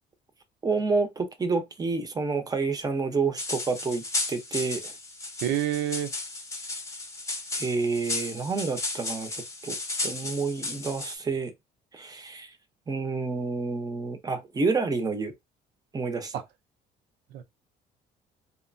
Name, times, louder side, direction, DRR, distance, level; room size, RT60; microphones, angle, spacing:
voice 1, 0.6-4.0 4.3-4.9 7.5-9.8 10.0-11.5 11.9-12.5 12.9-15.3 15.9-16.3, right 4 dB, 20° right, 0.7 m, -29 dB
sound 1, 3.4-11.1, left 2 dB, 20° left, 0.7 m, -34 dB
voice 2, 5.4-6.1 16.3-16.4 17.3-17.4, right 11 dB, 85° right, 0.6 m, -28 dB
2.8 x 2.1 x 2.5 m
cardioid pair, 110°, 17 cm